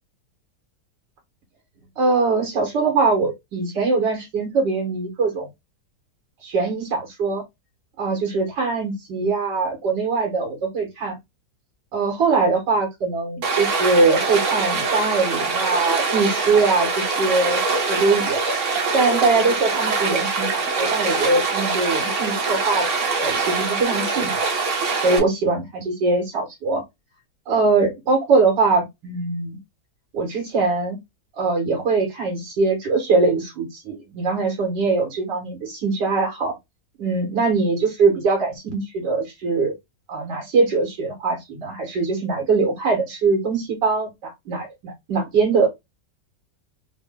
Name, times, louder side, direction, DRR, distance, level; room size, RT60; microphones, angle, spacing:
voice 1, 2.0-5.5 6.4-7.4 8.0-11.2 11.9-18.5 18.9-22.9 23.2-24.3 24.9-26.8 27.5-29.6 30.1-31.0 31.4-36.5 37.0-39.7 40.1-45.7, right 4 dB, 90° right, 1.9 m, -22 dB
Stream, 13.4-25.2, right 4 dB, 50° right, 1.3 m, -23 dB
3.8 x 2.2 x 3.5 m
omnidirectional pair, 1.8 m